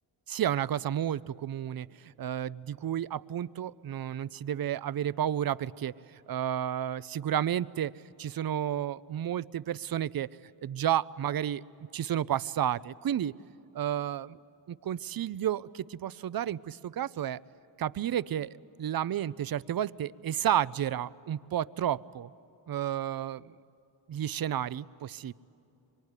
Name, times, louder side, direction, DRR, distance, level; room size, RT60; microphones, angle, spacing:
voice 1, 0.3-7.9 8.2-10.3 10.6-11.6 11.9-13.3 13.7-14.4 14.7-17.4 17.8-22.3 22.7-23.5 24.1-25.3, right 10 dB, 55° right, 19 dB, 0.5 m, -31 dB
25.0 x 24.0 x 9.8 m, 2.9 s
wide cardioid pair, 140°, 43 cm